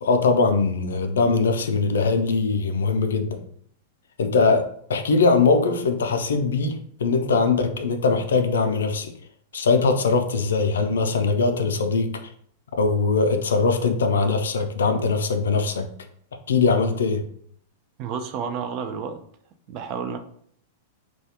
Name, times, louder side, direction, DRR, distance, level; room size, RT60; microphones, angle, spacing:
voice 1, 0.0-3.4 4.2-4.6 4.9-9.1 9.5-12.1 12.8-15.8 16.5-17.2, left 4 dB, 90° left, 7 dB, 0.3 m, -21 dB
voice 2, 18.0-19.2 19.7-20.2, right 6 dB, 45° right, 7 dB, 0.3 m, -30 dB
2.3 x 2.1 x 2.8 m, 0.64 s
hypercardioid pair, 120°, 0 cm